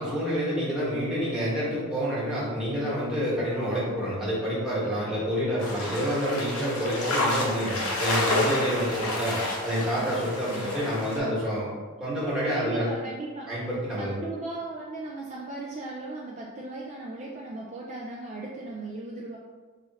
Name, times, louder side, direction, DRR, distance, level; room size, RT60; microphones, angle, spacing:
voice 1, 0.0-11.7 12.0-12.9 13.5-14.2, equal, 5° right, -9 dB, 1.2 m, -28 dB
sound 1, 5.6-11.2, left 1 dB, 85° left, 0.8 m, -29 dB
voice 2, 10.5-10.8 12.5-13.5 14.0-19.4, right 2 dB, 30° right, -4 dB, 0.3 m, -37 dB
3.2 x 2.4 x 3.9 m, 1.4 s
head